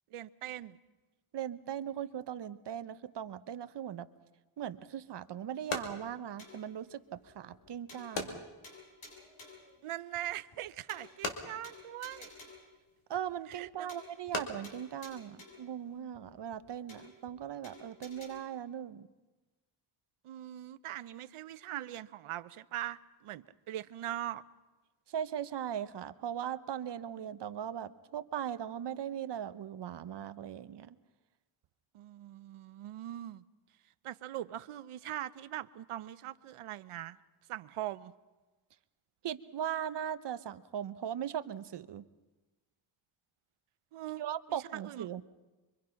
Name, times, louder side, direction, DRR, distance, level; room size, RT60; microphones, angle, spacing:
voice 1, 0.1-0.8 9.8-12.3 13.5-13.9 20.2-24.4 31.9-33.4 34.0-37.2 37.5-38.1 43.9-44.2 44.5-45.1, right 13 dB, 80° right, 0.8 m, -41 dB
voice 2, 1.3-4.1 4.6-8.4 13.1-19.1 25.1-30.9 39.2-42.0 44.2-45.2, right 9 dB, 55° right, 0.9 m, -39 dB
sound 1, 4.6-16.0, left 3 dB, 85° left, 2.6 m, -44 dB
sound 2, 6.4-6.7 7.1-7.2 7.5-7.6 7.9-8.4 8.6-9.7 10.1-10.2 10.5-10.6 10.9-11.4 11.6-12.7 13.1-13.2 13.5-13.6 13.9-14.4 14.6-15.7 16.1-16.2 16.5-16.6 16.9-17.4 17.6-18.3, left 2 dB, 70° left, 7.9 m, -53 dB
25.5 x 23.5 x 5.8 m
wide cardioid pair, 135°, 49 cm